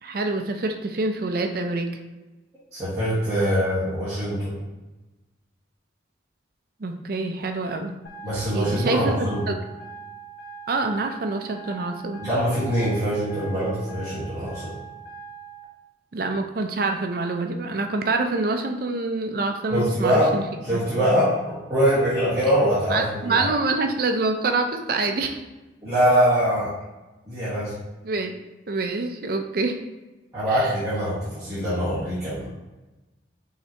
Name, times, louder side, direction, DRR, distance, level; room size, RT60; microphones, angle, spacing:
voice 1, 0.0-1.9 6.8-7.9 8.5-9.6 10.7-12.2 12.6-12.7 16.1-20.4 20.7-20.8 22.9-25.4 28.0-28.3 28.7-29.8 30.5-30.7, right 3 dB, 50° right, 5 dB, 0.5 m, -26 dB
voice 2, 2.7-4.6 8.2-9.4 12.2-14.7 19.7-20.3 20.6-23.5 25.8-26.7 27.3-27.7 30.3-32.4, equal, 15° right, -15 dB, 1.5 m, -23 dB
sound 1, 8.0-15.6, right 5 dB, 60° left, 0.7 m, -42 dB
5.6 x 3.3 x 2.9 m, 1.1 s
head